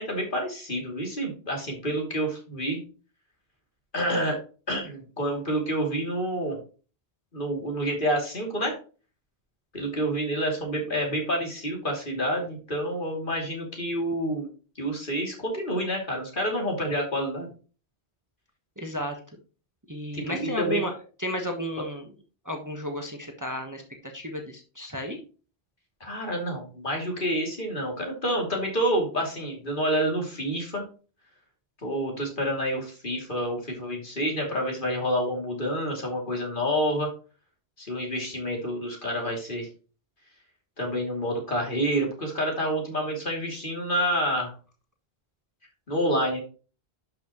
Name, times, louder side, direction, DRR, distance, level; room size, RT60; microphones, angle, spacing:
voice 1, 0.0-2.8 3.9-4.4 4.7-6.6 7.3-8.8 9.7-14.5 14.8-17.5 20.1-20.8 26.0-30.8 31.8-37.1 37.8-39.7 40.8-44.5 45.9-46.4, equal, 50° left, 0 dB, 2.9 m, -28 dB
voice 2, 18.8-19.2 19.9-20.9 21.2-22.1 22.4-25.2, equal, 20° right, 3 dB, 1.2 m, -33 dB
11.5 x 5.9 x 3.0 m, 0.36 s
omnidirectional pair, 1.1 m